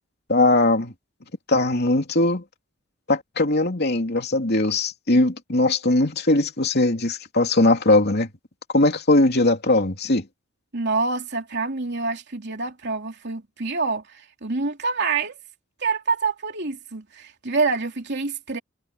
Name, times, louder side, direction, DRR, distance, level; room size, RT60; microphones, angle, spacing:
voice 1, 0.3-0.9 1.5-2.4 3.1-8.3 8.7-10.3, left 2 dB, 50° left, 3.0 m, -20 dB
voice 2, 10.7-15.4 15.8-18.6, right 4 dB, 55° right, 3.1 m, -26 dB
head